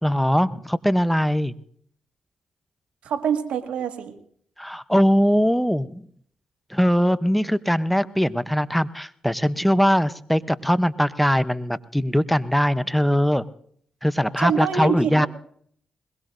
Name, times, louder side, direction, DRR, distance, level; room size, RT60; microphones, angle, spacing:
voice 1, 0.0-1.5 4.6-6.0 6.7-13.4 14.0-15.3, equal, 5° left, 14 dB, 0.7 m, -21 dB
voice 2, 3.0-4.1 14.4-15.3, right 7 dB, 80° right, 5 dB, 1.8 m, -25 dB
21.5 x 21.0 x 2.6 m, 0.62 s
supercardioid pair, 55°, 2 cm